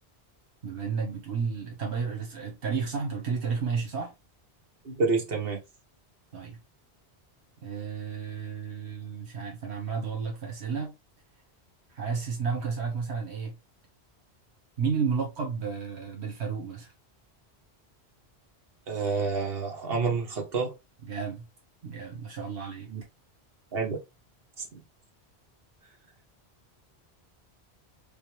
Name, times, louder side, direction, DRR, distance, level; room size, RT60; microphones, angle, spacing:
voice 1, 0.6-4.1 6.3-6.6 7.6-10.9 11.9-13.6 14.8-16.9 21.0-21.5 21.8-22.9, right 5 dB, 80° right, 1.6 m, -32 dB
voice 2, 4.8-5.6 18.9-20.7 22.9-23.0 23.7-24.0, right 4 dB, 65° right, 1.4 m, -28 dB
5.3 x 2.3 x 3.2 m
omnidirectional pair, 1.1 m